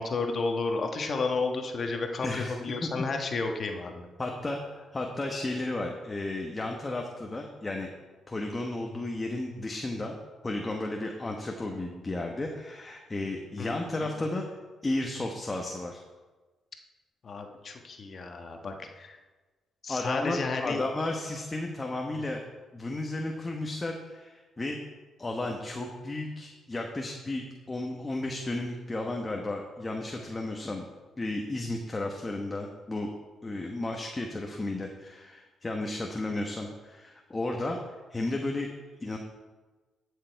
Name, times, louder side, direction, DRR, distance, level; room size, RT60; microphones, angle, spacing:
voice 1, 0.0-2.3 2.6-4.1 13.6-14.3 17.2-19.2 19.8-20.8, left 3 dB, 45° left, 4 dB, 1.2 m, -32 dB
voice 2, 2.2-2.5 2.8-3.1 4.2-7.9 8.3-10.1 10.4-14.5 14.8-16.0 19.9-22.4 22.7-24.8 25.2-30.8 31.2-33.1 33.4-37.8 38.1-38.7 39.0-39.2, left 2 dB, 20° left, 1 dB, 1.1 m, -33 dB
13.0 x 6.7 x 4.6 m, 1.3 s
cardioid pair, 90°, 0 cm